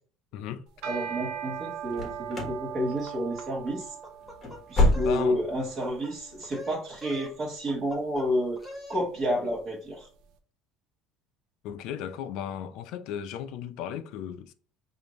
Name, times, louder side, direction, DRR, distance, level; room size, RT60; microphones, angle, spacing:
voice 1, 0.3-0.6 5.0-5.4 11.6-14.5, left 9 dB, 65° left, 0.4 m, -35 dB
sound 1, 0.7-10.0, right 8 dB, 70° right, 0.6 m, -41 dB
voice 2, 0.9-3.9 4.7-8.6 8.9-10.1, equal, 30° right, 1.2 m, -30 dB
sound 2, 1.9-2.6 2.9-3.4 3.7-3.8 4.2-5.5 5.8-5.9 6.4-6.5, left 2 dB, 20° left, 1.1 m, -27 dB
sound 3, 4.0-5.3 5.6-6.1 6.4-7.4 7.7-8.3 8.6-9.0, left 1 dB, ahead, 0.8 m, -44 dB
5.0 x 2.6 x 3.0 m
cardioid pair, 160°, 0 cm